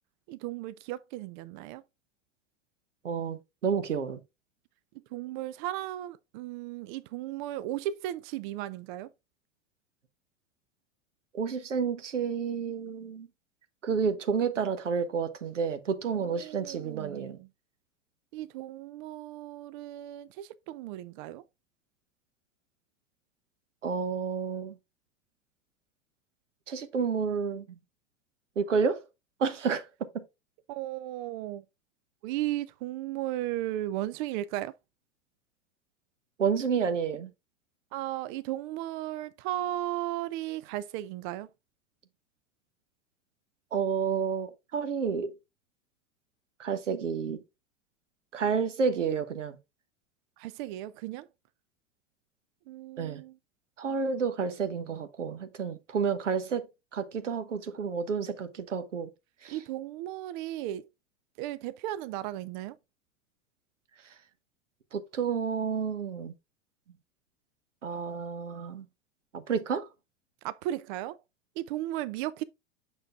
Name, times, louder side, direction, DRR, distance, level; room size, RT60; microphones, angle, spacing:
voice 1, 0.3-1.8 4.9-9.1 16.1-17.5 18.3-21.5 30.7-31.6 32.2-34.8 37.9-41.5 50.4-51.3 52.7-53.4 59.5-60.9 61.4-62.8 70.4-71.2 71.6-72.4, right 14 dB, 45° right, 0.4 m, -35 dB
voice 2, 3.0-4.2 11.3-13.3 13.8-17.4 23.8-24.8 26.7-27.7 28.6-29.0 29.4-29.8 30.1-30.2 36.4-37.3 43.7-45.3 46.6-47.4 48.3-49.6 53.0-53.2 53.8-56.7 56.9-59.1 59.4-59.5 64.9-66.3 67.8-68.8 69.3-69.9, right 6 dB, 80° right, 1.0 m, -30 dB
6.5 x 6.1 x 2.4 m
hypercardioid pair, 90°, 36 cm